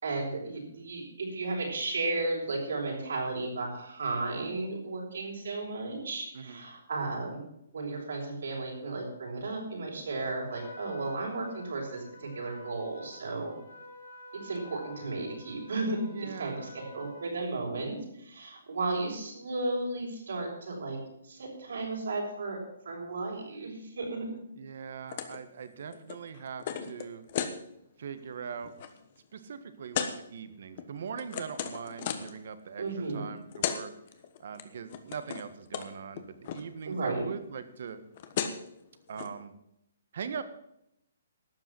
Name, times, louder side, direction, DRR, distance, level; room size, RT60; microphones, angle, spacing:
voice 1, 0.0-7.4 7.7-13.6 14.3-16.0 16.4-21.0 21.2-22.6 22.8-24.4 32.8-33.2 36.8-37.2, right 3 dB, 80° right, -1 dB, 6.6 m, -34 dB
Trumpet, 10.5-17.4, left 2 dB, 70° left, 2.8 m, -50 dB
voice 2, 16.1-16.7 24.5-27.3 28.0-28.7 29.3-33.9 34.4-38.0 39.1-39.5 40.1-40.4, right 7 dB, 55° right, 11 dB, 1.5 m, -41 dB
sound 1, 25.1-25.4 25.7-27.6 28.1-28.3 28.6-28.9 29.9-30.1 30.8-32.4 33.3-33.4 33.5-33.8 34.1-34.6 34.9-35.5 35.7-35.9 36.1-36.6 37.9-38.0 38.1-38.7 39.2-39.3, left 8 dB, 40° left, 1.3 m, -35 dB
12.5 x 8.0 x 7.6 m, 0.78 s
hypercardioid pair, 165°, 0 cm